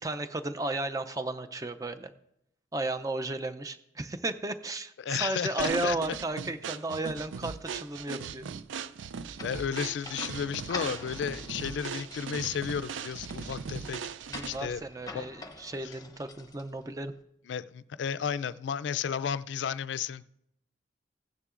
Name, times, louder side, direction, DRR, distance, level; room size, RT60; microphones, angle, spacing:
voice 1, 0.0-2.1 2.7-8.5 14.3-17.1, right 2 dB, 20° right, 9 dB, 0.4 m, -34 dB
voice 2, 5.0-6.0 9.4-14.0 14.4-14.8 15.1-15.2 17.5-20.3, left 7 dB, 75° left, 16 dB, 0.3 m, -33 dB
sound 1, 5.6-14.7, right 6 dB, 90° right, 0.4 m, -39 dB
sound 2, 9.4-17.0, left 3 dB, 20° left, 0.7 m, -46 dB
15.5 x 9.7 x 2.5 m, 0.79 s
head